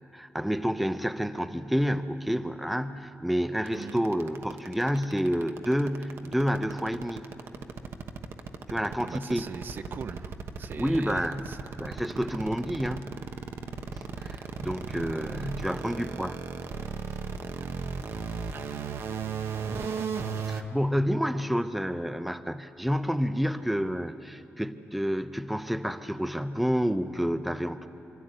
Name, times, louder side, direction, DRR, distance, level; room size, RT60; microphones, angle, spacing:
voice 1, 0.0-7.3 8.7-9.5 10.8-11.5 11.8-13.1 14.2-16.4 20.4-27.9, equal, ahead, 10 dB, 0.6 m, -29 dB
voice 2, 3.7-4.0 9.0-11.6 18.5-19.0, right 6 dB, 50° right, 10 dB, 0.6 m, -42 dB
sound 1, 3.7-20.6, right 6 dB, 80° right, 1.1 m, -35 dB
25.0 x 14.0 x 9.7 m, 2.8 s
wide cardioid pair, 155°, 4 cm